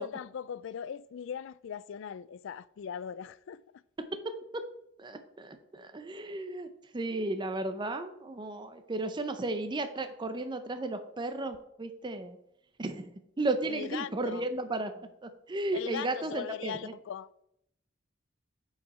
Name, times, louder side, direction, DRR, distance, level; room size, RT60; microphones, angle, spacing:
voice 1, 0.0-3.6 13.7-14.4 15.7-17.3, left 8 dB, 65° left, 0.3 m, -39 dB
voice 2, 4.0-4.7 5.0-12.4 12.8-16.9, right 2 dB, 25° right, 0.5 m, -34 dB
9.9 x 4.8 x 4.2 m
head